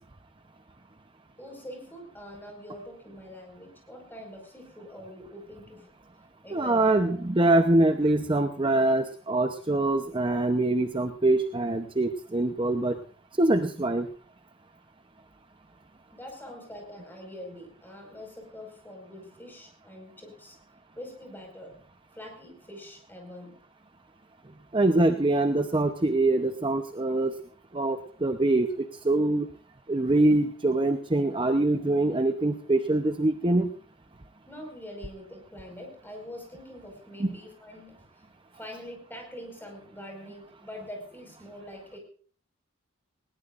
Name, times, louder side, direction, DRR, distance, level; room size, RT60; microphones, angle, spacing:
voice 1, 1.4-5.9 6.4-7.1 16.1-20.6 21.0-21.8 22.1-23.6 34.5-38.2 38.5-42.0, left 1 dB, 10° left, 2 dB, 5.2 m, -44 dB
voice 2, 6.5-12.9 13.4-14.1 24.7-27.3 27.7-29.5 29.9-33.7 37.2-37.3, right 2 dB, 25° right, 6 dB, 0.8 m, -24 dB
20.0 x 19.0 x 2.5 m, 0.44 s
head